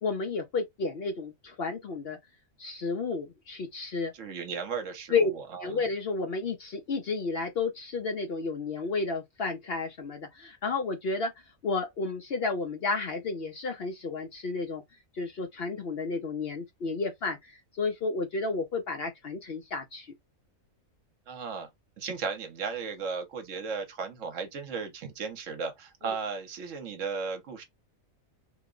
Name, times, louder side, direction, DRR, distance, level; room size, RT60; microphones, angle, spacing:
voice 1, 0.0-2.2 2.6-4.1 5.1-5.3 5.6-11.3 11.6-14.8 15.1-20.1 26.0-26.1, left 4 dB, 55° left, 0.7 m, -31 dB
voice 2, 4.1-5.8 21.3-21.7 22.0-27.6, right 5 dB, 70° right, 1.1 m, -35 dB
2.9 x 2.1 x 3.7 m
omnidirectional pair, 1.4 m